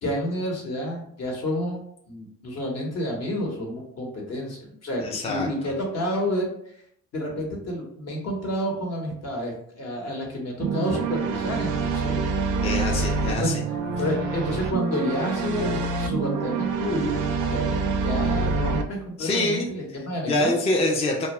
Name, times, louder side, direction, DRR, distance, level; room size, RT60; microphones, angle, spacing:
voice 1, 0.0-1.8 2.1-6.5 7.1-12.2 13.4-13.5 14.0-17.2 17.5-17.8 18.0-20.5, equal, 55° left, 0 dB, 1.0 m, -29 dB
voice 2, 5.0-5.5 12.6-13.6 19.2-19.7 20.2-21.3, left 2 dB, 20° left, 0 dB, 0.4 m, -25 dB
sound 1, 10.6-18.8, right 4 dB, 80° right, 0.4 m, -26 dB
2.2 x 2.1 x 2.9 m, 0.68 s
cardioid pair, 90°, 30 cm